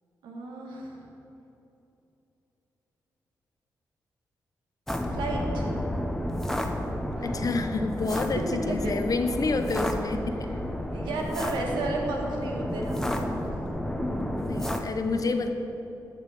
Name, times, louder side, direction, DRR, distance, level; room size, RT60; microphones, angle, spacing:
voice 1, 0.2-1.0 5.1-5.8 7.1-7.5 8.7-9.0 10.9-13.3, right 2 dB, 85° right, 0 dB, 1.4 m, -33 dB
sound 1, 4.9-14.8, left 1 dB, 5° left, 1.1 m, -31 dB
voice 2, 7.2-10.5 14.5-15.5, left 3 dB, 50° left, 7 dB, 0.9 m, -28 dB
11.5 x 6.6 x 4.9 m, 3.0 s
supercardioid pair, 45°, 8 cm